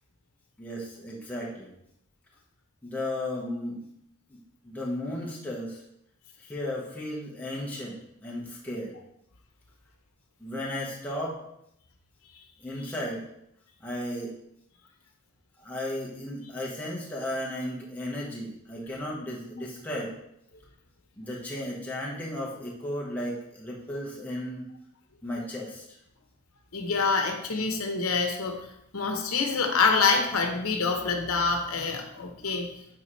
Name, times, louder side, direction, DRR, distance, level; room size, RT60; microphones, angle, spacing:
voice 1, 0.6-1.7 2.8-3.8 4.3-4.4 4.6-5.8 6.4-9.0 10.4-11.4 12.6-13.2 13.8-14.3 15.6-20.1 21.2-24.6 25.2-25.8, left 1 dB, 5° left, -4 dB, 1.3 m, -34 dB
voice 2, 26.7-28.6 28.9-32.7, left 4 dB, 80° left, 4 dB, 1.0 m, -26 dB
8.3 x 4.9 x 3.2 m, 0.78 s
head